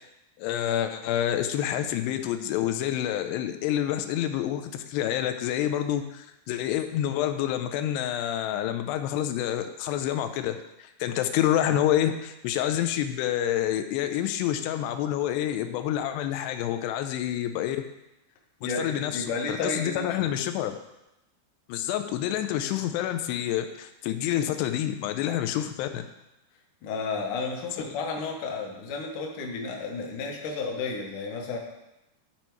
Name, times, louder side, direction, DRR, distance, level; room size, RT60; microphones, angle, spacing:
voice 1, 0.4-17.9 18.6-20.8 21.7-26.1, left 11 dB, 90° left, 8 dB, 2.7 m, -28 dB
voice 2, 18.6-20.3 26.8-31.6, left 4 dB, 65° left, 1 dB, 2.2 m, -32 dB
12.0 x 4.4 x 4.6 m, 0.92 s
omnidirectional pair, 4.7 m